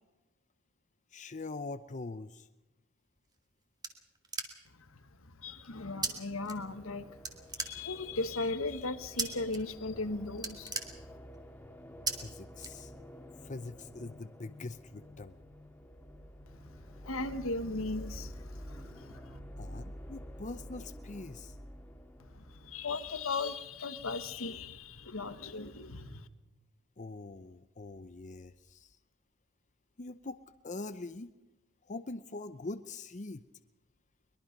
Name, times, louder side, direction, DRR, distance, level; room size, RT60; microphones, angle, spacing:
voice 1, 1.1-2.5 12.2-12.9 13.4-15.4 19.6-21.6 27.0-29.0 30.0-30.4 30.6-31.3 31.8-33.4, left 3 dB, 35° left, 11 dB, 0.6 m, -43 dB
sound 1, 3.2-4.9 6.0-6.1 6.4-7.0 7.2-8.2 9.2-9.6 9.9-10.1 10.3-11.5 12.1-12.2 12.6-13.2, right 4 dB, 20° right, 2.0 m, -37 dB
voice 2, 4.7-11.1 16.5-19.4 22.2-26.3, left 3 dB, 80° left, 10 dB, 1.5 m, -38 dB
sound 2, 6.3-23.2, equal, 10° left, 2.2 m, -49 dB
23.0 x 21.5 x 5.3 m, 1.0 s
head